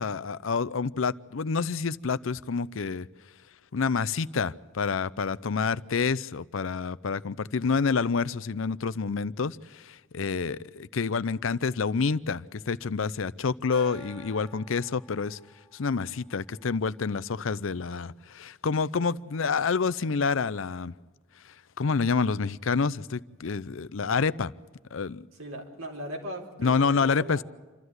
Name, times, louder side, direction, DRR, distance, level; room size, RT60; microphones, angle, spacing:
voice 1, 0.0-3.1 3.7-15.4 15.7-20.9 21.4-24.5 24.9-25.3 26.6-27.4, left 5 dB, 70° left, 17 dB, 0.6 m, -28 dB
Gong, 13.7-17.0, left 2 dB, 5° right, 6.8 m, -50 dB
voice 2, 25.4-27.4, equal, 90° right, 1 dB, 4.0 m, -38 dB
28.0 x 13.0 x 8.0 m, 1.3 s
head